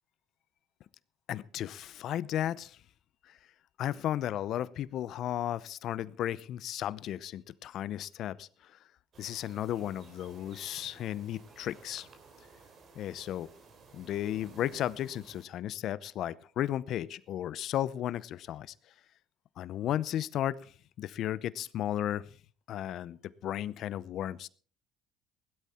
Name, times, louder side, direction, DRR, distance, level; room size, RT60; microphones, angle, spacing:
voice 1, 1.3-2.8 3.2-3.4 3.8-8.8 9.2-12.1 13.0-13.5 13.9-18.7 19.6-22.3 22.7-24.5, left 12 dB, 55° left, 19 dB, 0.6 m, -34 dB
sound 1, 9.1-15.4, right 4 dB, 40° right, 3.2 m, -55 dB
17.0 x 12.0 x 4.3 m, 0.42 s
cardioid pair, 130°, 0 cm